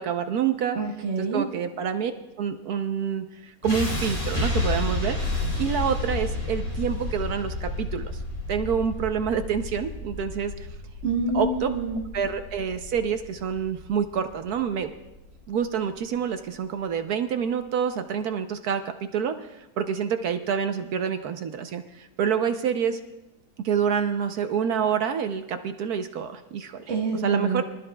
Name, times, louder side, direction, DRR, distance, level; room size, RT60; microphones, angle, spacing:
voice 1, 0.0-0.8 1.2-2.1 2.4-5.2 5.6-8.2 8.5-10.7 11.3-11.7 12.1-14.9 15.5-23.0 23.6-27.6, right 7 dB, 70° right, 8 dB, 1.1 m, -27 dB
voice 2, 0.7-1.5 11.0-12.1 26.9-27.6, right 3 dB, 40° right, -1 dB, 1.5 m, -26 dB
sound 1, 3.6-15.7, left 2 dB, 50° left, 3.9 m, -31 dB
24.0 x 13.0 x 2.2 m, 0.98 s
omnidirectional pair, 1.9 m